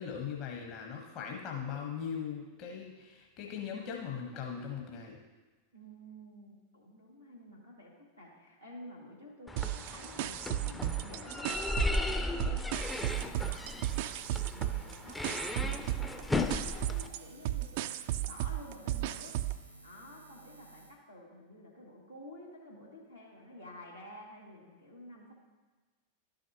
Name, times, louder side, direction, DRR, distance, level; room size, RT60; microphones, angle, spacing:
voice 1, 0.0-5.2, left 7 dB, 40° left, 0 dB, 1.1 m, -39 dB
voice 2, 5.7-14.1 14.4-19.4 19.8-25.3, left 1 dB, 90° left, -6 dB, 2.2 m, -51 dB
sound 1, 9.5-17.1, left 2 dB, 10° left, 0.5 m, -36 dB
sound 2, 9.6-12.1 12.4-19.6, right 14 dB, 50° right, 0.3 m, -35 dB
Buzz, 12.6-21.0, right 2 dB, 90° right, 0.7 m, -56 dB
12.0 x 6.4 x 2.9 m, 1.3 s
figure-of-eight pair, 90°, 0 cm